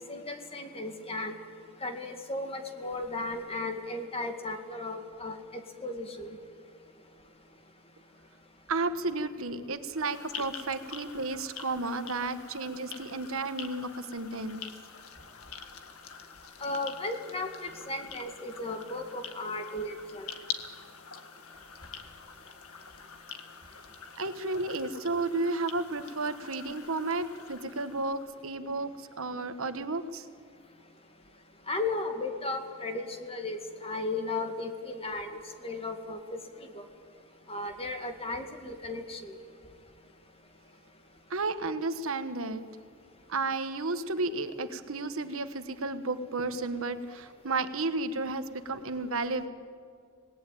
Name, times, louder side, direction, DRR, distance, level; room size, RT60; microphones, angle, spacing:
voice 1, 0.1-1.4 1.8-6.4 16.6-20.3 31.7-36.4 36.7-36.8 37.5-39.3, left 2 dB, 25° left, 5 dB, 2.1 m, -35 dB
voice 2, 8.7-14.6 24.2-28.9 29.2-30.2 41.3-42.6 43.3-49.5, right 3 dB, 70° right, 10 dB, 1.3 m, -32 dB
sound 1, 9.9-28.4, left 7 dB, 85° left, 1.8 m, -46 dB
26.0 x 19.0 x 9.2 m, 2.3 s
head